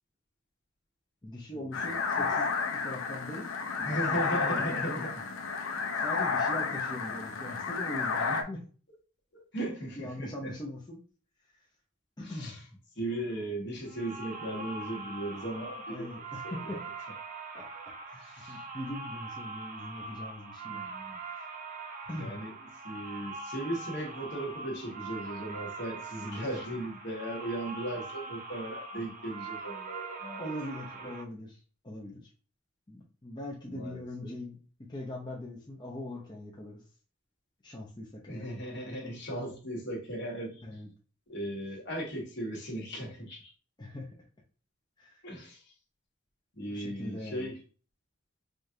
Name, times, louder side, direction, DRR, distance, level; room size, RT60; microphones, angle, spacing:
voice 1, 1.2-3.5 3.8-5.0 5.9-8.6 10.0-11.0 11.5-11.7 12.2-12.6 15.9-16.8 17.5-17.7 18.1-20.8 21.2-21.4 22.1-22.4 30.4-32.3 32.9-36.8 37.6-38.5 40.6-40.9 43.8-44.2 45.0-45.3 46.7-47.5, left 1 dB, 20° left, -3 dB, 0.7 m, -41 dB
sound 1, 1.7-8.4, left 5 dB, 85° left, 0.5 m, -31 dB
voice 2, 1.8-2.3 3.8-5.2 9.3-10.5 12.2-12.6 13.0-16.1 16.4-16.8 17.7-17.8 18.2-18.6 20.7-21.2 22.2-22.5 22.8-30.5 33.6-34.3 38.3-40.8 41.3-43.5 45.2-45.6 46.5-47.6, right 1 dB, 60° left, -2 dB, 1.4 m, -37 dB
sound 2, 13.9-31.2, right 4 dB, 40° right, 0.5 m, -42 dB
4.9 x 2.5 x 2.7 m, 0.39 s
head